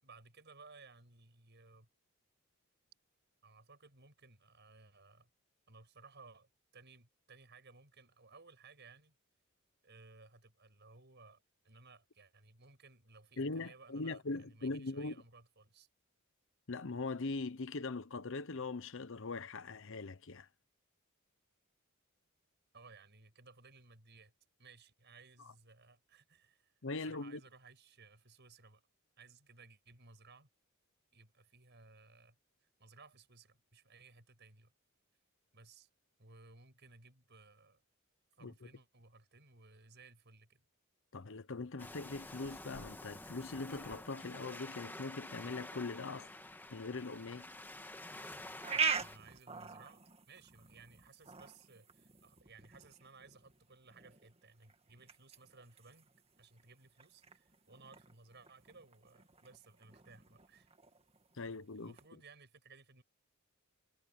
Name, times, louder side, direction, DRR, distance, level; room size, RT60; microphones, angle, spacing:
voice 1, 0.0-1.9 3.4-5.3 5.7-9.1 9.8-15.9 22.7-24.3 24.6-28.8 29.2-30.5 31.1-32.4 32.6-34.7 35.5-35.9 36.2-37.8 38.4-40.6 48.7-56.1 56.4-60.7 61.7-63.0, right 4 dB, 55° right, 6.5 m, -60 dB
voice 2, 13.4-15.1 16.7-20.5 25.4-25.5 26.8-27.4 38.4-38.5 41.1-46.3 46.7-47.5 61.3-61.9, left 3 dB, 65° left, 0.9 m, -41 dB
Waves surf, 41.8-49.2, left 1 dB, 10° left, 1.5 m, -49 dB
sound 1, 48.0-62.1, right 5 dB, 30° right, 2.0 m, -44 dB
head